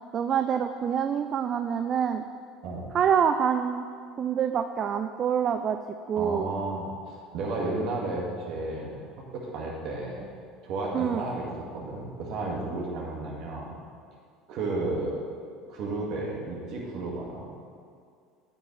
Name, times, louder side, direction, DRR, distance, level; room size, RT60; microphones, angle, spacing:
voice 1, 0.1-2.2 2.9-3.8 4.2-5.8 6.1-6.5 10.9-11.2, right 8 dB, 45° right, 8 dB, 0.4 m, -26 dB
voice 2, 6.1-9.1 9.3-10.3 10.6-13.8 14.5-15.2 15.6-17.5, right 2 dB, 60° right, -2 dB, 2.0 m, -33 dB
9.1 x 8.8 x 3.3 m, 2.2 s
hypercardioid pair, 75°, 0 cm